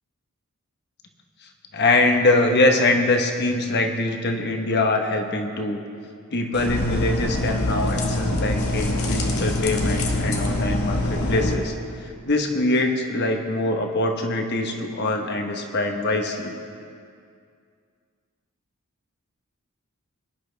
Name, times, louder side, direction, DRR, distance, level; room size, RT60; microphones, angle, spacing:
voice 1, 1.7-5.8 6.3-11.7 12.2-16.5, left 2 dB, 50° left, 3 dB, 1.2 m, -23 dB
sound 1, 6.5-11.5, left 1 dB, 85° left, 1.6 m, -24 dB
21.5 x 10.5 x 3.4 m, 2.3 s
head